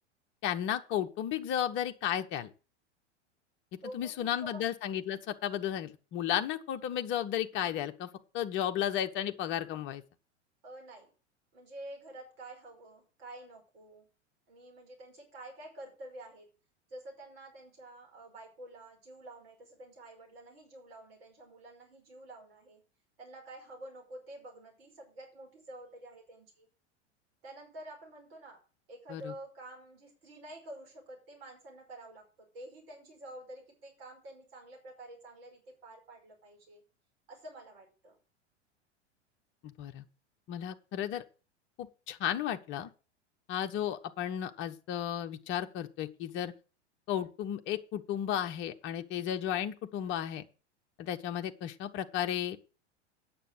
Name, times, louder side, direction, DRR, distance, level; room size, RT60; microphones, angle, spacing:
voice 1, 0.4-2.5 3.9-8.1 8.3-10.0 29.1-29.3 39.6-40.0 40.5-41.2 41.8-42.9 43.5-46.5 47.1-50.4 51.0-52.6, left 10 dB, 35° left, 7 dB, 1.1 m, -34 dB
voice 2, 3.8-4.7 10.6-11.1 11.5-14.1 14.5-16.5 16.9-22.8 23.2-26.7 27.4-28.6 28.9-36.8 37.3-38.2, right 1 dB, 55° right, 1 dB, 5.4 m, -49 dB
9.1 x 7.8 x 6.3 m, 0.34 s
figure-of-eight pair, 90°, 35 cm